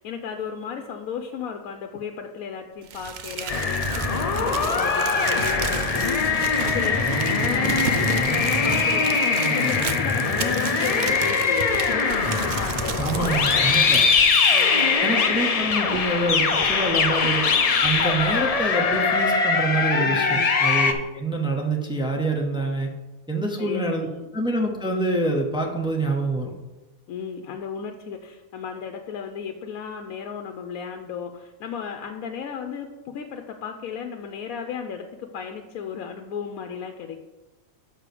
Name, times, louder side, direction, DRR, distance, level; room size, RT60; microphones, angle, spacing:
voice 1, 0.0-14.1 14.5-15.2 19.9-20.5 23.6-24.3 27.1-37.2, left 7 dB, 90° left, 4 dB, 1.1 m, -35 dB
Crumpling crinkling, 2.9-15.0, right 6 dB, 90° right, 0.4 m, -33 dB
sound 1, 3.5-20.9, left 5 dB, 60° left, 0.4 m, -22 dB
voice 2, 13.0-14.0 15.0-17.5 17.8-22.9 23.3-24.1 24.3-26.5, right 2 dB, 5° right, 1 dB, 0.6 m, -26 dB
6.1 x 4.8 x 6.7 m, 1.1 s
omnidirectional pair, 1.5 m